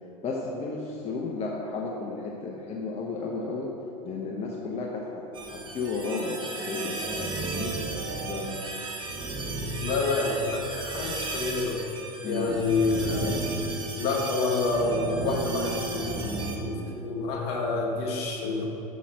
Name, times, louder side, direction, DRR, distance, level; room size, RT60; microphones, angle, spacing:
voice 1, 0.2-3.7 4.0-8.5 12.2-12.6 16.7-16.9, left 3 dB, 30° left, -2 dB, 1.0 m, -33 dB
sound 1, 5.3-16.6, right 2 dB, 20° right, 1.3 m, -34 dB
voice 2, 9.8-11.8 12.2-13.4 14.0-18.6, left 3 dB, 55° left, -1 dB, 1.7 m, -28 dB
6.1 x 5.8 x 6.2 m, 3.0 s
hypercardioid pair, 95°, 21 cm